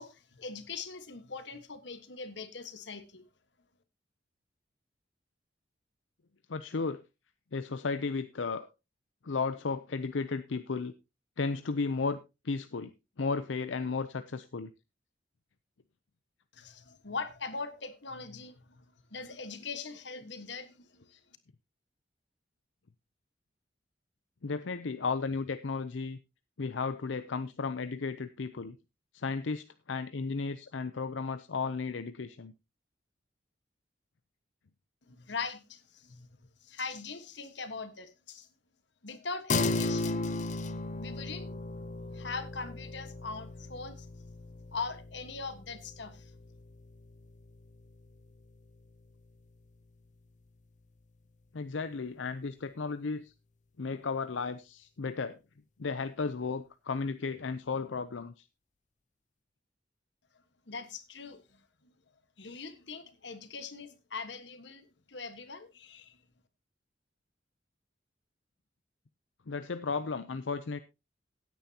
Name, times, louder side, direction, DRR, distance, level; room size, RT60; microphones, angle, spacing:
voice 1, 0.0-3.2 16.5-18.8 19.1-21.1 35.1-36.3 36.6-38.5 39.0-40.3 41.0-41.5 42.1-44.1 44.7-46.3 60.7-61.9 62.4-66.2, left 4 dB, 70° left, 1.5 m, -41 dB
voice 2, 6.5-7.0 7.5-8.7 9.2-10.9 11.4-12.2 12.4-14.7 24.4-26.2 26.6-28.8 29.1-32.5 51.5-53.3 53.8-55.4 55.8-58.4 69.5-70.8, left 4 dB, 85° left, 0.6 m, -34 dB
sound 1, 39.5-49.2, left 3 dB, 40° left, 0.7 m, -36 dB
16.5 x 9.4 x 2.8 m
head